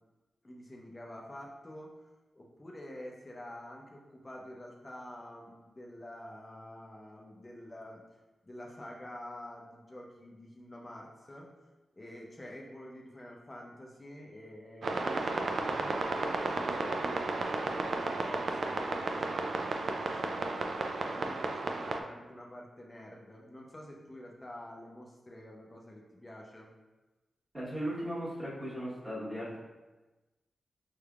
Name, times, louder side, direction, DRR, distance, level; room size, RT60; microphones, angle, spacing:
voice 1, 0.4-2.0 2.3-8.0 8.4-11.5 12.0-26.7, left 1 dB, 15° left, -2 dB, 0.6 m, -48 dB
sound 1, 14.8-22.0, right 3 dB, 60° right, 0.3 m, -33 dB
voice 2, 27.5-29.6, equal, 15° right, -8 dB, 1.2 m, -37 dB
5.5 x 3.4 x 2.4 m, 1.1 s
wide cardioid pair, 175°, 0 cm